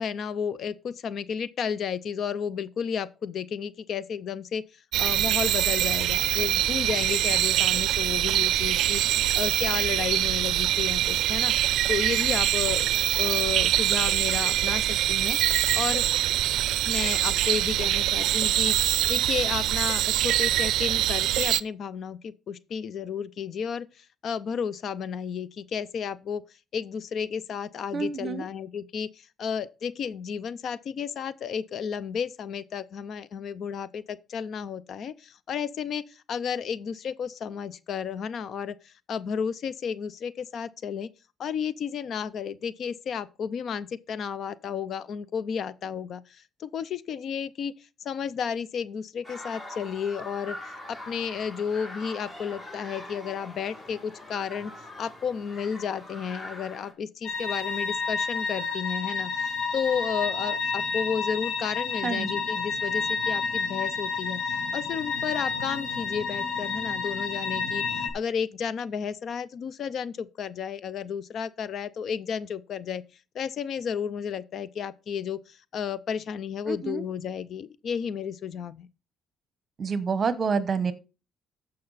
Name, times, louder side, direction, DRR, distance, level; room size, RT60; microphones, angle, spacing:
voice 1, 0.0-12.9 13.1-16.1 16.8-26.4 26.7-41.1 41.4-73.0 73.3-78.9, left 7 dB, 50° left, 0.5 m, -32 dB
sound 1, 4.9-21.6, right 13 dB, 75° right, 0.4 m, -24 dB
voice 2, 27.9-28.5 62.0-62.4 76.7-77.0 79.8-80.9, right 5 dB, 35° right, 1.0 m, -28 dB
sound 2, 49.2-56.9, left 1 dB, 15° left, 2.3 m, -43 dB
sound 3, 57.2-68.1, left 5 dB, 80° left, 2.6 m, -30 dB
14.5 x 5.4 x 4.1 m
cardioid pair, 135°, 0 cm